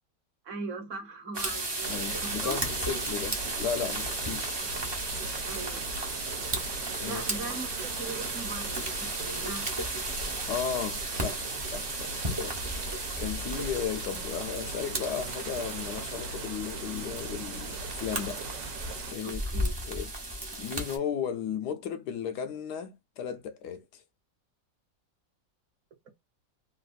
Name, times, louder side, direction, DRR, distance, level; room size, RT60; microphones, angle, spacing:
voice 1, 0.4-2.6 5.5-6.1 7.0-9.7 19.2-19.7, right 3 dB, 50° right, 1.1 m, -40 dB
sound 1, 1.3-21.0, right 2 dB, 35° right, 0.4 m, -34 dB
sound 2, 1.8-19.1, right 4 dB, 85° right, 1.3 m, -40 dB
voice 2, 1.9-4.6 7.0-7.2 10.5-12.6 13.2-18.4 19.1-20.1 20.6-24.0, left 7 dB, 75° left, 1.1 m, -35 dB
3.3 x 2.3 x 2.4 m
omnidirectional pair, 1.9 m